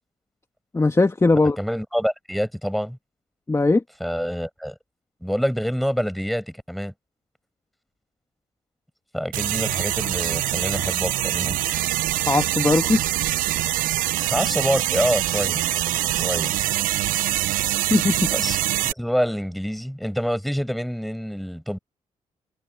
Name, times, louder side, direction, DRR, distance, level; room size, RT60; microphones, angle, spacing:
voice 1, 0.7-1.6 3.5-3.8 12.3-13.0 17.9-18.3, left 3 dB, 20° left, 1.7 m, -19 dB
voice 2, 1.6-3.0 4.0-4.7 5.2-6.9 9.1-11.7 14.3-15.6 16.1-16.5 18.3-21.8, equal, ahead, 6.1 m, -26 dB
sound 1, 9.3-18.9, right 15 dB, 85° right, 0.8 m, -24 dB
supercardioid pair, 60°, 14 cm